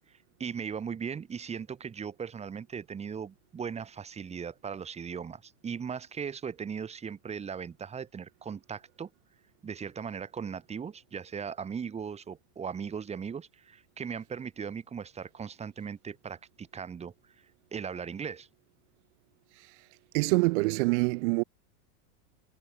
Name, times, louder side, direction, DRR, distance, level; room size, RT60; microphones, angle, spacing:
voice 1, 0.4-9.1 9.6-17.1 17.7-18.5, right 6 dB, 15° right, 7.7 m, -38 dB
voice 2, 20.1-21.4, right 25 dB, 45° right, 5.2 m, -25 dB
supercardioid pair, 165°, 46 cm